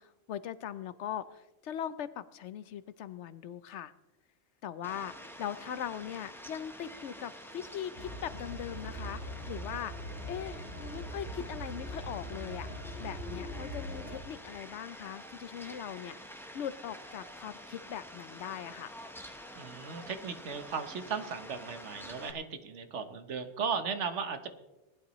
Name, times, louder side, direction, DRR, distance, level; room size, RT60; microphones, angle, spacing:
voice 1, 0.0-3.9 4.6-9.2 9.5-9.9 10.3-10.6 10.9-12.7 13.0-19.0, left 9 dB, 80° left, 15 dB, 1.0 m, -40 dB
Fowl, 4.8-22.3, equal, ahead, 0.9 m, -48 dB
sound 1, 8.0-14.2, equal, 60° left, 1.9 m, -41 dB
voice 2, 19.6-24.5, right 6 dB, 85° right, 8 dB, 1.4 m, -36 dB
19.5 x 11.5 x 3.1 m, 1.0 s
omnidirectional pair, 1.2 m